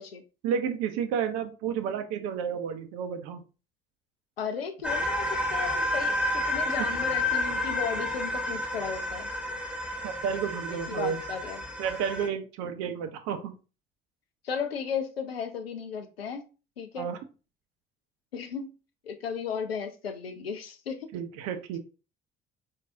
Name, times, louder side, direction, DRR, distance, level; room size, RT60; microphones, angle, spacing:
voice 1, 0.4-3.4 6.8-6.9 10.0-11.2 11.8-13.6 17.0-17.2 21.1-21.8, right 7 dB, 60° right, 0.7 m, -31 dB
voice 2, 4.4-9.3 10.9-11.6 14.4-16.4 16.8-17.1 18.3-18.7 19.0-21.1, left 6 dB, 85° left, 0.5 m, -35 dB
sound 1, 4.8-12.3, left 1 dB, 5° right, 0.8 m, -30 dB
4.5 x 2.6 x 2.6 m
figure-of-eight pair, 50°, 29 cm